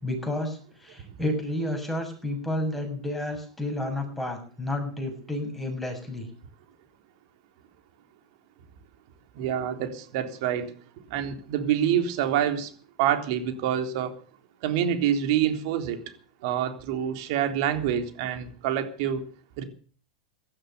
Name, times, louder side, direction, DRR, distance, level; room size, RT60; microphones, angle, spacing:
voice 1, 0.0-6.3, left 1 dB, 5° left, 3 dB, 6.7 m, -31 dB
voice 2, 9.4-10.7 11.1-12.7 13.0-14.1 14.6-16.0 16.4-19.2 19.6-19.7, right 9 dB, 55° right, 7 dB, 3.7 m, -26 dB
16.5 x 12.5 x 6.8 m, 0.43 s
hypercardioid pair, 125°, 3 cm